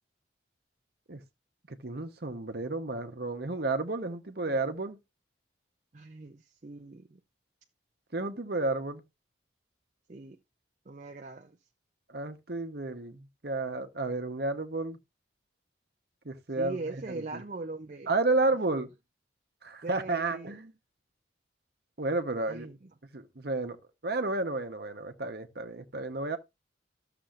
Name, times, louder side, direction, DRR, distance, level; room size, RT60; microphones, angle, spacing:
voice 1, 1.7-5.0 8.1-9.0 12.1-15.0 16.2-17.4 18.1-18.9 19.6-20.7 22.0-22.7 23.1-23.8 24.0-26.4, right 2 dB, 55° right, 1.0 m, -32 dB
voice 2, 5.9-7.2 10.1-10.4 10.9-11.6 16.6-18.1 19.8-20.6 22.5-22.8, right 3 dB, 40° right, 0.5 m, -40 dB
13.5 x 6.9 x 2.5 m
head